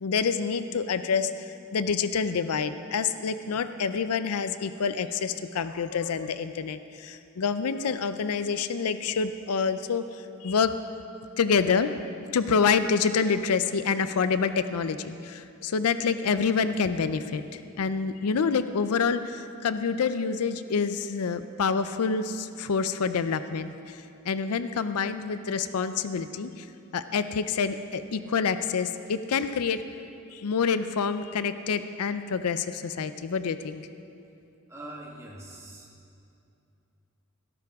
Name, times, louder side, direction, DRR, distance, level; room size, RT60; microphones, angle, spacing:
voice 1, 0.0-10.0 10.4-10.7 11.4-11.9 12.3-24.0 24.3-26.7 26.9-29.8 30.3-33.8, left 5 dB, 90° left, 11 dB, 0.5 m, -27 dB
voice 2, 34.7-35.9, right 1 dB, 15° right, -4 dB, 1.4 m, -42 dB
16.5 x 13.5 x 3.5 m, 2.6 s
head